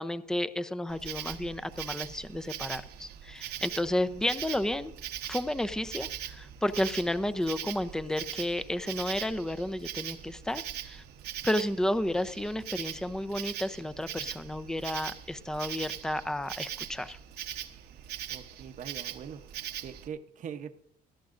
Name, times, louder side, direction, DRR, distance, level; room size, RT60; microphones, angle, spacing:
voice 1, 0.0-4.9 5.3-11.0 11.4-17.2, left 1 dB, 5° left, 12 dB, 0.6 m, -32 dB
Insect, 0.9-20.1, right 11 dB, 75° right, 1.1 m, -41 dB
voice 2, 18.3-19.4 19.8-20.7, right 7 dB, 50° right, 7 dB, 0.9 m, -42 dB
18.5 x 13.5 x 2.6 m, 0.71 s
cardioid pair, 110°, 17 cm